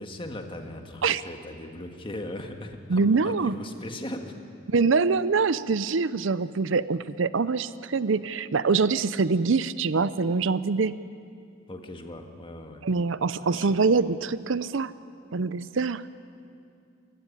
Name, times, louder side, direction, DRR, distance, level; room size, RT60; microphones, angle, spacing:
voice 1, 0.0-4.4 11.7-12.9 13.4-13.9, left 1 dB, 25° left, 5 dB, 1.7 m, -39 dB
voice 2, 2.9-3.6 4.7-10.9 12.8-14.9 15.3-16.0, right 4 dB, 70° right, 16 dB, 0.6 m, -24 dB
24.0 x 15.5 x 10.0 m, 2.4 s
head